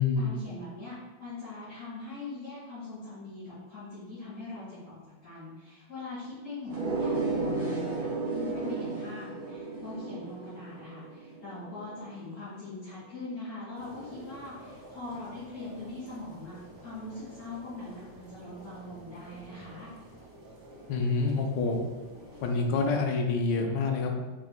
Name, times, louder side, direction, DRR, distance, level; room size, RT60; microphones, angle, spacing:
voice 1, 0.2-19.9, left 2 dB, 50° left, -13 dB, 2.1 m, -42 dB
sound 1, 6.7-12.0, right 3 dB, 55° right, 1.2 m, -33 dB
sound 2, 13.7-22.9, right 1 dB, 40° right, 1.1 m, -50 dB
voice 2, 20.9-21.8 22.4-24.2, left 4 dB, 70° left, 2 dB, 1.2 m, -27 dB
5.0 x 3.6 x 2.2 m, 1.3 s
omnidirectional pair, 2.1 m